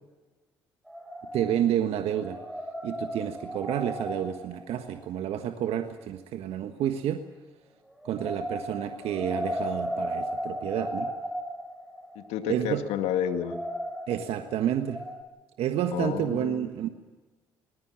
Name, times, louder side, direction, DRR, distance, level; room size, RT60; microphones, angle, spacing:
sound 1, 0.9-1.8 2.1-5.3 8.0-15.2, equal, 5° right, 6.0 m, -36 dB
voice 1, 1.3-2.4 2.8-7.2 8.0-11.1 12.5-12.8 14.1-15.0 15.6-16.9, right 10 dB, 65° right, 7 dB, 1.5 m, -29 dB
voice 2, 12.2-13.6 15.9-16.7, left 9 dB, 70° left, 8 dB, 2.0 m, -30 dB
24.5 x 20.0 x 7.6 m, 1.2 s
hypercardioid pair, 55°, 11 cm